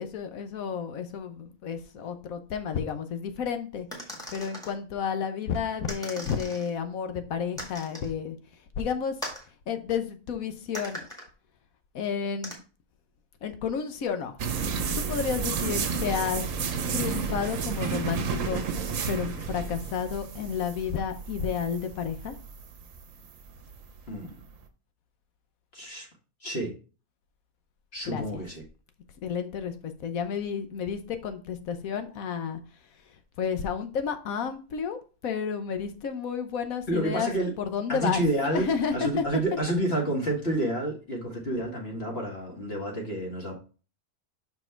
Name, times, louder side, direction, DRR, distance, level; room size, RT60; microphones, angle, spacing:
voice 1, 0.0-4.1 4.3-8.4 8.8-9.1 9.7-11.0 11.9-12.5 13.4-14.3 15.0-16.4 16.9-18.6 19.1-22.3 28.0-28.2 29.2-32.6 33.4-37.3 37.6-38.2 38.5-39.2, left 7 dB, 65° left, 8 dB, 1.2 m, -31 dB
sound 1, 3.9-4.7 5.9-6.7 7.6-8.1 9.2-9.5 10.7-11.3 12.4-12.5, equal, ahead, 1.8 m, -39 dB
sound 2, 14.4-24.5, right 5 dB, 60° right, 1.1 m, -32 dB
voice 2, 24.1-24.4 25.7-26.1 26.4-26.7 27.9-28.6 36.9-37.5 37.9-43.5, right 1 dB, 40° left, 0 dB, 1.9 m, -29 dB
5.9 x 4.7 x 4.4 m, 0.37 s
omnidirectional pair, 1.6 m